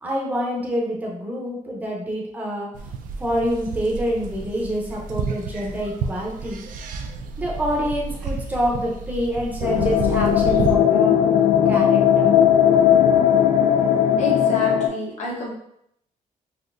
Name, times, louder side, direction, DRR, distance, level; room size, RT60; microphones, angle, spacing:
voice 1, 0.0-2.7 3.2-6.6 7.4-11.2 11.7-12.4, equal, 10° right, -2 dB, 0.6 m, -26 dB
sound 1, 2.7-10.8, right 4 dB, 75° right, 0.4 m, -31 dB
sound 2, 9.6-14.9, left 9 dB, 90° left, 0.4 m, -17 dB
voice 2, 14.2-15.5, left 1 dB, 55° left, -3 dB, 0.9 m, -29 dB
3.9 x 2.6 x 2.5 m, 0.74 s
wide cardioid pair, 175°, 14 cm